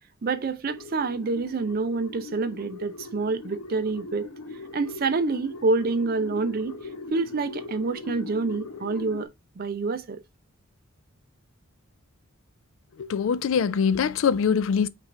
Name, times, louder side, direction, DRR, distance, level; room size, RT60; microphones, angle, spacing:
voice 1, 0.2-4.3 4.7-6.8 7.1-9.3 9.6-10.2, right 3 dB, 40° right, 0.4 m, -27 dB
sound 1, 0.7-9.3, left 3 dB, 85° left, 0.9 m, -40 dB
voice 2, 13.0-14.9, left 6 dB, 60° left, 0.3 m, -23 dB
6.2 x 2.5 x 3.2 m
head